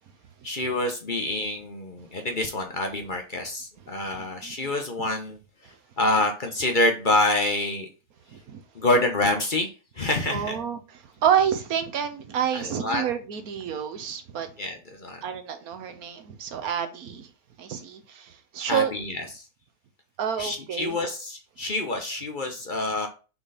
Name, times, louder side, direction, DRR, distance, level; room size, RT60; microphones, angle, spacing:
voice 1, 0.4-5.4 6.0-7.9 8.7-9.7 10.0-10.6 12.5-13.1 14.6-15.2 18.7-19.4 20.4-23.1, left 2 dB, 40° left, 1.0 m, -26 dB
voice 2, 4.1-4.7 5.0-5.1 8.3-8.6 10.3-14.5 15.2-17.3 17.6-18.9 20.2-21.0, right 8 dB, 80° right, 1.4 m, -29 dB
6.0 x 3.9 x 4.1 m
omnidirectional pair, 1.6 m